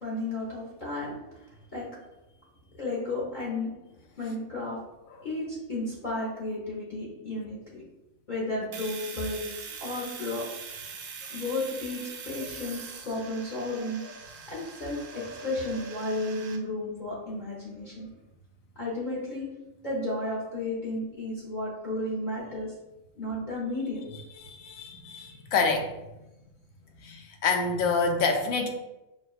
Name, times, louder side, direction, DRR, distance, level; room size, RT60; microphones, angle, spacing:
voice 1, 0.0-1.9 2.7-3.7 4.2-4.8 5.2-7.8 8.3-10.7 11.3-14.0 14.5-18.1 18.8-19.5 19.8-22.7 23.1-24.1 25.2-25.4, left 2 dB, 40° left, -5 dB, 0.9 m, -33 dB
Domestic sounds home sounds, 8.7-16.6, right 6 dB, 60° right, 0.6 m, -42 dB
voice 2, 15.1-15.5 24.4-25.9 27.0-28.7, left 4 dB, 90° left, 3 dB, 1.0 m, -27 dB
5.9 x 2.2 x 2.4 m, 0.96 s
omnidirectional pair, 1.4 m